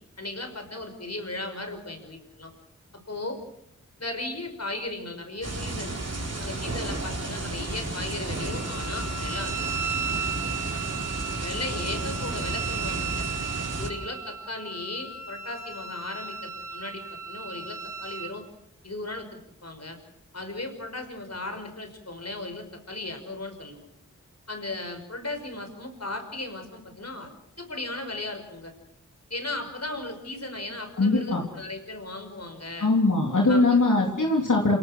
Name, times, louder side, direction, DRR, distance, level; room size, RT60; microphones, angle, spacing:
voice 1, 0.2-2.5 3.1-3.4 4.0-5.9 6.4-9.7 11.4-13.3 13.8-18.4 18.8-19.3 19.6-20.0 20.3-23.9 24.5-27.3 27.6-28.7 29.3-32.9 33.4-33.8, left 2 dB, 55° left, 6 dB, 5.5 m, -36 dB
sound 1, 5.4-13.9, right 2 dB, 55° right, 4.3 m, -32 dB
Wind instrument woodwind instrument, 8.4-18.3, right 6 dB, 80° right, 4.3 m, -35 dB
voice 2, 31.0-31.4 32.8-34.8, left 2 dB, 80° left, -1 dB, 3.5 m, -21 dB
28.5 x 18.5 x 6.4 m, 0.77 s
wide cardioid pair, 50°, 30 cm